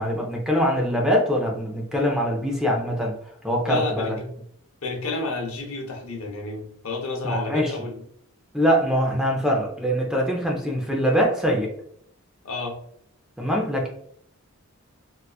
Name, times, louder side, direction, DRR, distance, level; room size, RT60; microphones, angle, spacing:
voice 1, 0.0-3.2 3.4-4.2 7.2-7.7 8.5-11.7 13.4-13.9, equal, 5° right, -1 dB, 0.5 m, -23 dB
voice 2, 3.7-4.3 4.8-8.0 12.4-12.8, left 3 dB, 75° left, 2 dB, 0.8 m, -30 dB
4.0 x 2.4 x 2.3 m, 0.69 s
head